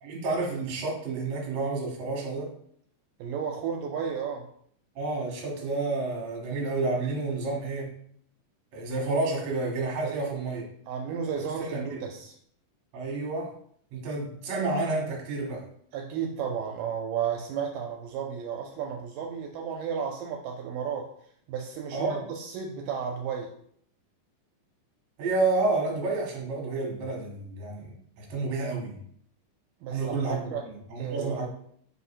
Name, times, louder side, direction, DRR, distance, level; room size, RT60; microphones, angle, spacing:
voice 1, 0.0-2.5 5.0-8.0 8.7-10.7 11.6-12.0 12.9-13.5 13.9-15.6 21.9-22.2 25.2-29.0 29.9-31.5, right 3 dB, 60° right, -2 dB, 2.1 m, -30 dB
voice 2, 3.2-4.5 10.0-10.2 10.9-12.3 15.9-21.1 21.5-23.5 29.8-30.2 30.5-30.7 31.0-31.5, right 7 dB, 85° right, 1 dB, 2.1 m, -33 dB
5.3 x 2.0 x 4.4 m, 0.64 s
omnidirectional pair, 3.9 m